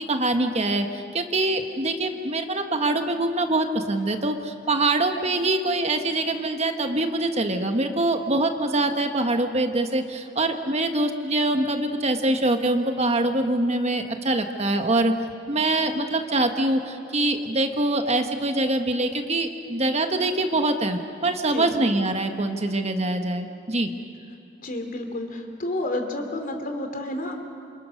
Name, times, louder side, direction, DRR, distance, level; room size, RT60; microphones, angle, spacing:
voice 1, 0.0-15.1 15.5-23.9, right 2 dB, 35° right, 6 dB, 1.4 m, -24 dB
voice 2, 24.6-27.3, left 1 dB, 45° left, 5 dB, 3.0 m, -30 dB
28.0 x 27.0 x 6.5 m, 2.5 s
head